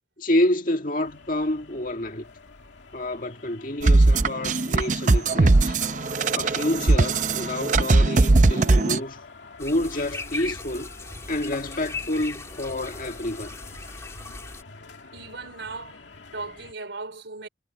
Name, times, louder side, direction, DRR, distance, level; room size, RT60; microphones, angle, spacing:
voice 1, 0.2-2.3 2.9-5.8 6.3-9.2 9.6-10.9 11.3-13.6, left 1 dB, 45° left, 2.0 m, -28 dB
sound 1, 1.0-16.7, left 4 dB, 80° left, 2.3 m, -46 dB
sound 2, 3.8-9.0, right 2 dB, 45° right, 0.6 m, -19 dB
sound 3, 9.6-14.6, left 3 dB, 15° left, 1.7 m, -38 dB
voice 2, 15.1-17.5, right 3 dB, 80° right, 3.8 m, -38 dB
head